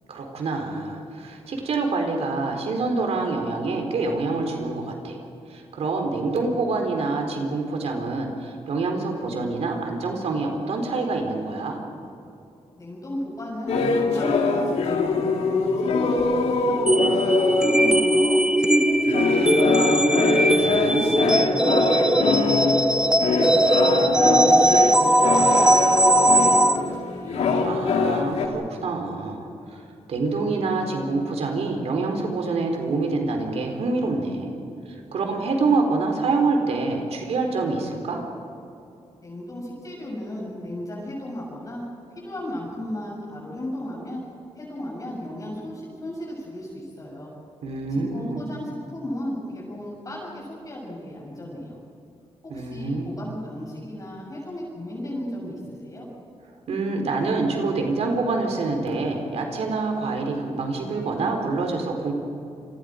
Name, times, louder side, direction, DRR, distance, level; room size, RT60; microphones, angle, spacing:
voice 1, 0.1-5.2 5.5-11.8 20.5-21.1 27.6-29.8 30.1-34.5 34.9-38.2 47.6-48.4 52.5-53.1 56.7-62.1, right 3 dB, 70° right, 3 dB, 3.8 m, -26 dB
voice 2, 12.8-16.9 17.2-20.2 20.8-23.6 23.9-27.4 39.2-41.9 42.2-44.2 44.6-47.3 47.9-51.8 52.4-56.1, left 1 dB, 30° left, -5 dB, 7.4 m, -35 dB
sound 1, 13.7-18.5 19.0-28.5, left 4 dB, 75° left, 2.7 m, -24 dB
sound 2, 16.9-26.8, right 1 dB, 5° right, 0.9 m, -19 dB
29.5 x 25.0 x 5.1 m, 2.7 s
wide cardioid pair, 140°, 11 cm